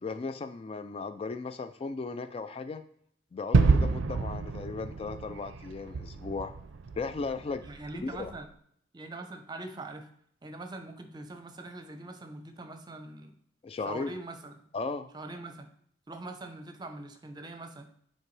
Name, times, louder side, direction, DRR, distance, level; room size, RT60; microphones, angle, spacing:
voice 1, 0.0-2.8 3.3-6.5 7.0-7.6 8.0-8.3 13.6-14.1 14.7-15.1, left 4 dB, 30° left, 9 dB, 0.3 m, -36 dB
Gunshot gunfire / Fireworks / Boom, 3.5-8.3, right 4 dB, 85° right, 0.4 m, -28 dB
voice 2, 7.6-8.5 8.9-10.1 10.4-13.3 13.8-14.6 15.1-15.7 16.1-17.9, right 2 dB, 25° right, 7 dB, 0.7 m, -43 dB
10.0 x 4.4 x 3.3 m, 0.67 s
head